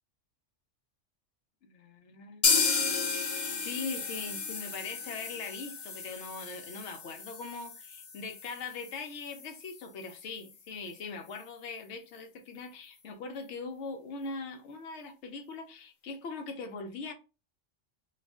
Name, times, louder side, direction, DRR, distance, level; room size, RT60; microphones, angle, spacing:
voice 1, 1.6-2.4 3.6-17.1, left 4 dB, 75° left, 0.9 m, -41 dB
sound 1, 2.4-10.2 10.5-10.6 10.9-11.0 11.4-11.5, left 5 dB, 50° left, 0.6 m, -33 dB
3.2 x 2.4 x 3.4 m
omnidirectional pair, 1.2 m